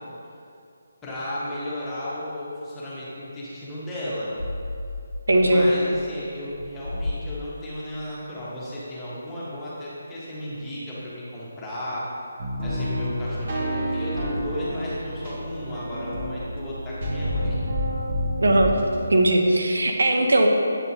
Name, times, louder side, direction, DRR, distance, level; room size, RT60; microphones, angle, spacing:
voice 1, 1.0-4.3 5.4-12.1 12.6-17.6, left 1 dB, 10° left, -9 dB, 1.1 m, -34 dB
sound 1, 4.3-7.8, left 2 dB, 90° left, 0.6 m, -34 dB
voice 2, 5.3-5.7 18.4-18.7 19.1-20.5, right 1 dB, 80° right, 2 dB, 0.7 m, -19 dB
sound 2, 12.4-19.0, equal, 45° right, 1.0 m, -29 dB
7.9 x 4.4 x 2.8 m, 2.5 s
figure-of-eight pair, 165°, 0 cm